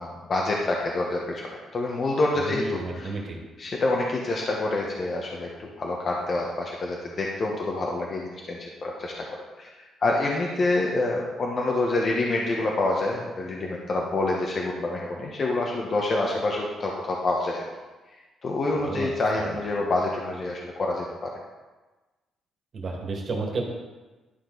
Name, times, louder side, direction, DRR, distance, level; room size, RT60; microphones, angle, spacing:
voice 1, 0.0-3.1 3.6-9.2 9.6-9.7 10.0-17.6 18.4-21.3, left 2 dB, 45° left, -1 dB, 1.1 m, -27 dB
voice 2, 2.4-3.4 18.7-19.6 22.7-23.6, right 3 dB, 50° right, 0 dB, 2.0 m, -32 dB
11.5 x 4.6 x 4.0 m, 1.2 s
cardioid pair, 90°, 0 cm